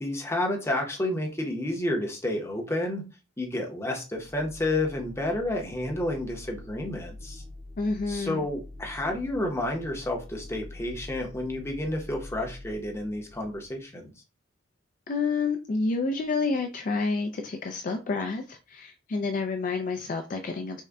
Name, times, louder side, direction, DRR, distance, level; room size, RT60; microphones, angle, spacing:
voice 1, 0.0-3.0 3.4-7.4 8.1-14.1, left 1 dB, 15° left, 1 dB, 0.7 m, -30 dB
sound 1, 4.1-13.8, left 2 dB, 50° right, 0.8 m, -45 dB
voice 2, 7.8-8.5 15.1-20.8, left 4 dB, 40° left, 4 dB, 0.3 m, -29 dB
3.6 x 2.1 x 3.4 m, 0.32 s
head